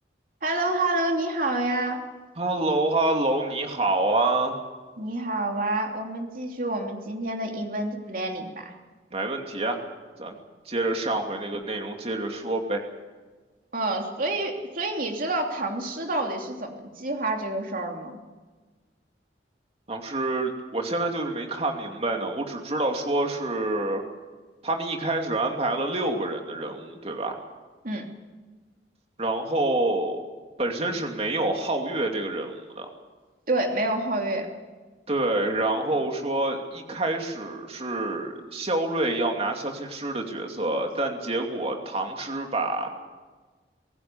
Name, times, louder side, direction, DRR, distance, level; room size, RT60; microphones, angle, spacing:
voice 1, 0.4-2.0 5.0-8.7 13.7-18.1 27.8-28.0 33.5-34.5, right 2 dB, 50° right, 2 dB, 3.0 m, -28 dB
voice 2, 2.4-4.6 9.1-9.8 10.2-10.4 10.7-12.8 19.9-24.0 24.6-27.4 29.2-30.2 30.6-32.9 35.1-42.9, right 2 dB, 35° right, 3 dB, 2.7 m, -27 dB
25.5 x 17.5 x 7.0 m, 1.3 s
head